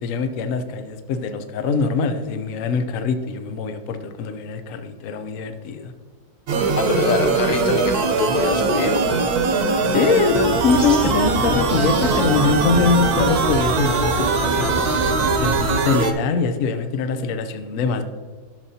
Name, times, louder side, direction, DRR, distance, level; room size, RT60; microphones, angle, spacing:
voice 1, 0.0-5.9 9.9-14.8 15.4-18.0, left 5 dB, 60° left, 8 dB, 1.0 m, -23 dB
sound 1, 6.5-16.1, right 4 dB, 65° right, 1.3 m, -21 dB
voice 2, 6.7-9.3, left 4 dB, 85° left, 6 dB, 1.4 m, -24 dB
sound 2, 10.3-15.8, right 1 dB, 10° right, 1.1 m, -28 dB
12.0 x 6.8 x 2.8 m, 1.5 s
omnidirectional pair, 1.8 m